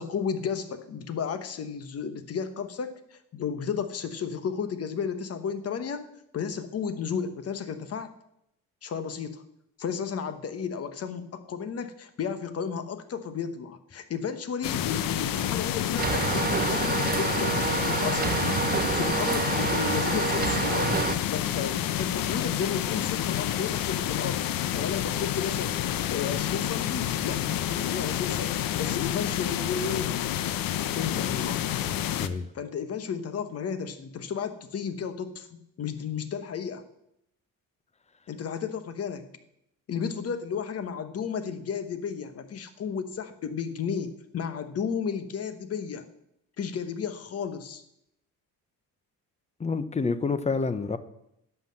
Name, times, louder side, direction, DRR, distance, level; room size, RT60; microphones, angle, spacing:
voice 1, 0.0-6.1 6.3-8.1 8.8-9.4 9.8-18.4 18.7-21.0 21.3-25.8 26.1-30.1 30.8-31.7 32.5-36.8 38.3-39.3 39.9-46.1 46.6-47.8, left 6 dB, 45° left, 11 dB, 1.1 m, -33 dB
sound 1, 14.6-32.3, left 11 dB, 70° left, 0.8 m, -29 dB
sound 2, 16.0-21.1, right 6 dB, 25° right, 0.6 m, -28 dB
voice 2, 49.6-51.0, left 4 dB, 20° left, 13 dB, 0.6 m, -28 dB
11.5 x 5.8 x 7.5 m, 0.79 s
cardioid pair, 135°, 35 cm